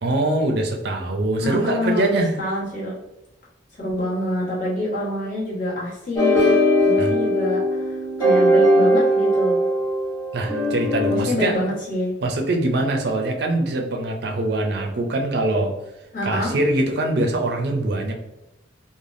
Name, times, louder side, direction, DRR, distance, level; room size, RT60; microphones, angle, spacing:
voice 1, 0.0-2.3 7.0-7.1 10.3-11.6 12.2-15.7 16.2-18.1, right 2 dB, 60° right, 2 dB, 0.4 m, -23 dB
voice 2, 1.4-2.9 3.8-6.6 6.8-9.7 11.0-12.2 16.1-16.5, left 1 dB, 45° left, -6 dB, 1.2 m, -26 dB
sound 1, 6.2-11.2, equal, 20° left, 1.1 m, -19 dB
3.3 x 2.1 x 2.5 m, 0.95 s
head